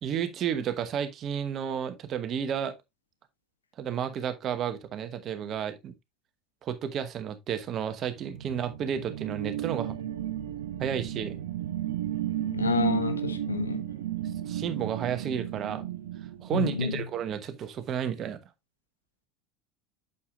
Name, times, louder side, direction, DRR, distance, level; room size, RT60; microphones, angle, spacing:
voice 1, 0.0-2.7 3.8-5.9 6.6-10.0 10.8-11.4 14.5-15.8 16.4-18.4, right 8 dB, 45° right, 1.1 m, -32 dB
sound 1, 8.0-17.2, right 11 dB, 75° right, 0.8 m, -34 dB
voice 2, 12.5-13.8 16.5-17.0, left 5 dB, 85° left, 0.8 m, -29 dB
8.5 x 6.8 x 2.3 m
figure-of-eight pair, 70°, 0 cm